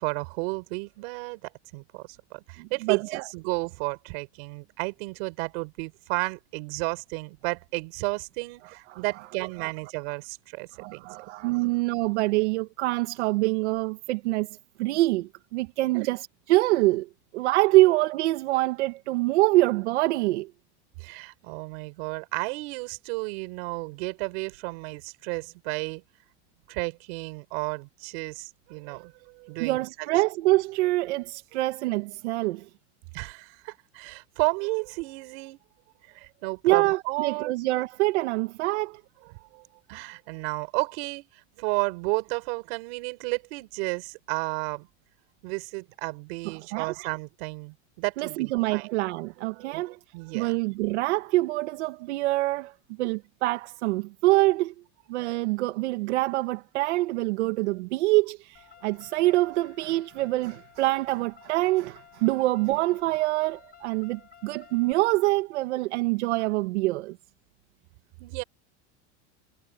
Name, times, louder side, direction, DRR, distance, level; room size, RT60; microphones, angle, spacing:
voice 1, 0.0-11.1 15.9-16.1 17.7-17.8 21.0-26.0 26.7-30.1 33.1-35.6 36.1-37.5 39.3-44.9 45.4-48.9 49.6-50.6 68.2-68.4, right 30 dB, 60° right, 4.8 m, -33 dB
voice 2, 2.6-3.2 8.9-9.0 9.6-9.7 10.8-14.5 14.8-17.1 17.3-20.5 29.6-32.6 36.6-39.0 46.7-46.9 48.2-49.9 50.3-52.7 53.0-54.7 55.1-67.2, right 19 dB, 85° right, 1.4 m, -25 dB
Car, 58.6-64.9, left 8 dB, 30° left, 4.6 m, -54 dB
supercardioid pair, 160°, 34 cm